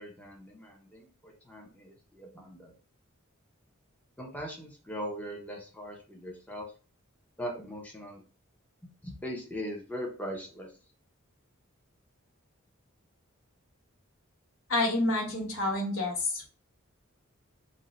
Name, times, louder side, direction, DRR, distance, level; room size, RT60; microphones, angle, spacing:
voice 1, 0.0-2.7 4.2-6.7 7.4-8.2 8.8-10.7, equal, 5° left, -1 dB, 0.5 m, -40 dB
voice 2, 14.7-16.5, left 2 dB, 75° left, 0 dB, 1.0 m, -28 dB
2.6 x 2.0 x 3.9 m, 0.37 s
head